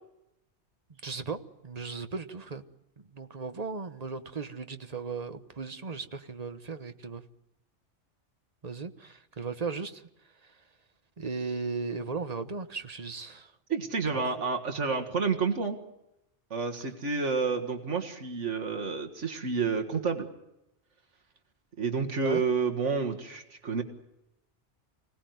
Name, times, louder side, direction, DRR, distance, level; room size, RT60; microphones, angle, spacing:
voice 1, 1.0-2.6 3.0-7.2 8.6-10.1 10.4-10.6 11.2-13.5 14.1-14.5 22.2-22.4, right 4 dB, 35° right, 9 dB, 1.2 m, -37 dB
voice 2, 13.7-15.8 16.5-20.3 21.8-23.8, right 4 dB, 80° right, 4 dB, 2.1 m, -29 dB
25.5 x 18.0 x 9.4 m, 0.90 s
omnidirectional pair, 1.2 m